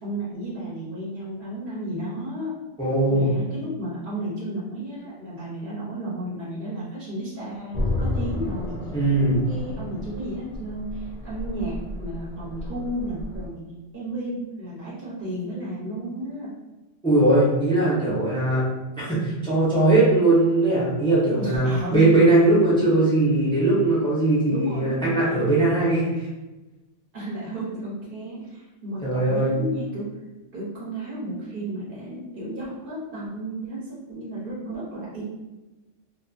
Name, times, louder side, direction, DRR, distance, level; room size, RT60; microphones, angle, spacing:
voice 1, 0.0-2.5 3.1-8.8 9.4-13.6 13.9-16.5 21.4-22.2 24.5-25.5 27.1-30.1 30.5-35.2, right 1 dB, 50° right, -8 dB, 0.9 m, -33 dB
voice 2, 2.8-3.3 8.9-9.4 17.0-18.6 19.0-26.3 29.0-29.5, right 2 dB, 5° left, -8 dB, 0.5 m, -20 dB
sound 1, 7.7-13.5, left 2 dB, 80° left, 0.3 m, -32 dB
2.5 x 2.5 x 2.3 m, 1.1 s
omnidirectional pair, 1.3 m